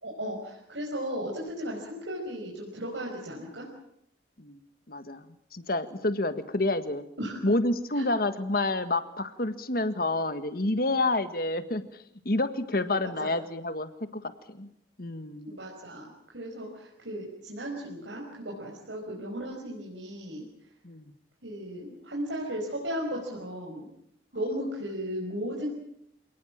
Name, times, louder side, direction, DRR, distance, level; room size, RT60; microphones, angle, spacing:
voice 1, 0.0-3.7 7.2-7.4 8.0-8.1 13.2-13.3 15.4-20.4 21.4-23.9 24.3-25.7, equal, 85° right, -3 dB, 5.4 m, -35 dB
voice 2, 4.9-5.2 5.5-7.0 7.4-11.8 12.2-14.7 15.0-15.5 20.8-21.1, left 2 dB, 50° left, 10 dB, 1.6 m, -29 dB
27.5 x 19.0 x 7.5 m, 0.75 s
head